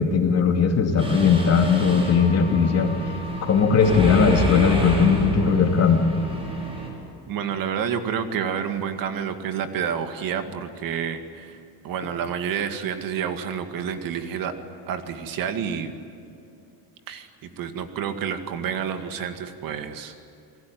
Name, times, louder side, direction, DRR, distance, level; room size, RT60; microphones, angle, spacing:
voice 1, 0.0-2.9 3.5-6.0, left 5 dB, 35° left, 3 dB, 3.0 m, -19 dB
Mechanisms, 1.0-6.9, equal, 15° right, 5.8 m, -29 dB
voice 2, 7.3-11.6 11.8-14.6 14.9-15.9 17.1-17.3 17.6-20.1, right 7 dB, 50° right, 7 dB, 2.2 m, -29 dB
29.0 x 21.5 x 9.5 m, 2.7 s
cardioid pair, 165°, 43 cm